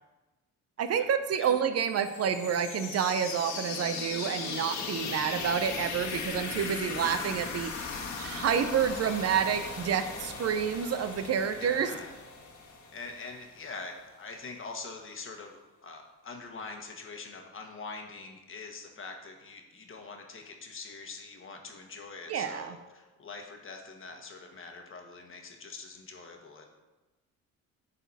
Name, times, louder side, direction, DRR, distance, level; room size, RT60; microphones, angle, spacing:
voice 1, 0.8-11.9 22.3-22.8, right 7 dB, 55° right, 10 dB, 0.6 m, -29 dB
sound 1, 1.9-13.6, left 5 dB, 75° left, 1.5 m, -38 dB
voice 2, 11.6-12.1 12.9-26.7, left 4 dB, 45° left, 3 dB, 1.3 m, -44 dB
10.0 x 4.1 x 4.1 m, 1.1 s
cardioid pair, 90°, 30 cm